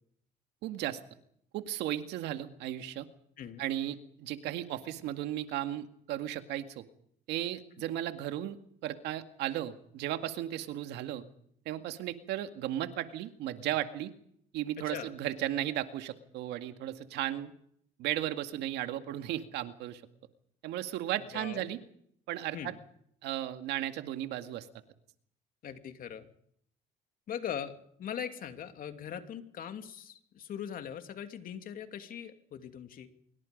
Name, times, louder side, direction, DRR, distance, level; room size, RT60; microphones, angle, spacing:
voice 1, 0.6-1.0 1.5-3.1 3.6-6.9 7.3-8.6 8.8-11.2 11.7-14.1 14.5-17.5 18.0-20.0 20.6-21.8 22.3-22.7 23.2-24.7, right 12 dB, 85° right, 8 dB, 2.0 m, -35 dB
voice 2, 14.8-15.1 21.3-21.7 22.5-22.7 25.6-26.3 27.3-27.7 28.0-33.1, left 8 dB, 55° left, 7 dB, 2.8 m, -40 dB
25.5 x 23.5 x 5.3 m, 0.67 s
cardioid pair, 110°, 17 cm